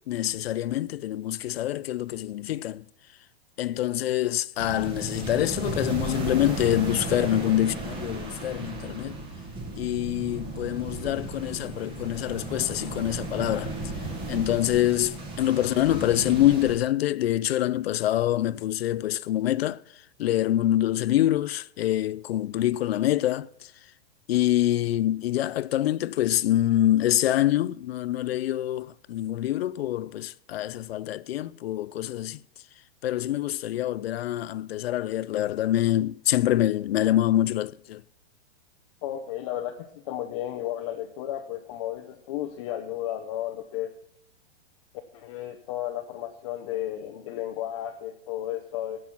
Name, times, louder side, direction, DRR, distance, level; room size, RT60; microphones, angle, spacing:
voice 1, 0.1-2.9 3.6-9.1 9.8-13.7 14.3-19.8 20.2-23.7 24.3-32.4 33.0-38.0, left 13 dB, 65° left, 0.5 m, -25 dB
sound 1, 4.6-16.8, right 2 dB, 15° right, 1.5 m, -35 dB
voice 2, 39.0-39.7 40.1-43.9 45.1-49.0, left 12 dB, 30° left, 0.7 m, -33 dB
17.0 x 6.1 x 6.1 m
hypercardioid pair, 165°, 33 cm